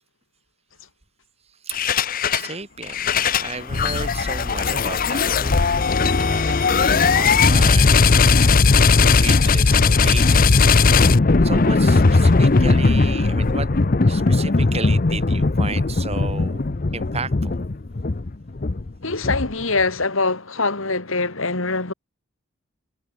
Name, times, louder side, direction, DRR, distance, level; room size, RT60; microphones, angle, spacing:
sound 1, 1.7-2.5 2.8-19.8, left 4 dB, 40° left, 0.7 m, -18 dB
voice 1, 2.3-5.7 6.2-8.5 9.0-10.7 11.4-13.7 14.1-16.6 16.9-17.6, right 4 dB, 30° right, 2.2 m, -33 dB
voice 2, 19.0-21.9, left 3 dB, 65° left, 2.4 m, -23 dB
head